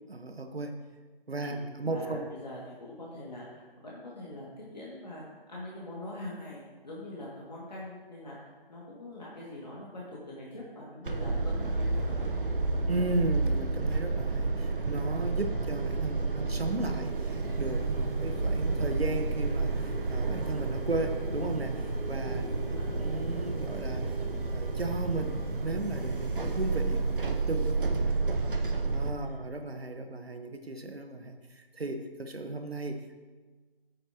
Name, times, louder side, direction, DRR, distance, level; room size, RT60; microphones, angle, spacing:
voice 1, 0.1-0.8 1.3-2.3 12.9-22.4 22.7-24.2 24.5-28.2 28.9-33.2, right 2 dB, 90° right, 6 dB, 1.2 m, -35 dB
voice 2, 1.4-12.3 22.3-22.8 29.1-29.4, left 1 dB, 45° left, -6 dB, 2.3 m, -43 dB
sound 1, 11.0-29.1, right 3 dB, 60° right, 1.0 m, -30 dB
sound 2, 17.0-27.4, right 1 dB, 40° right, 2.8 m, -46 dB
15.0 x 8.9 x 3.0 m, 1.3 s
figure-of-eight pair, 170°, 30 cm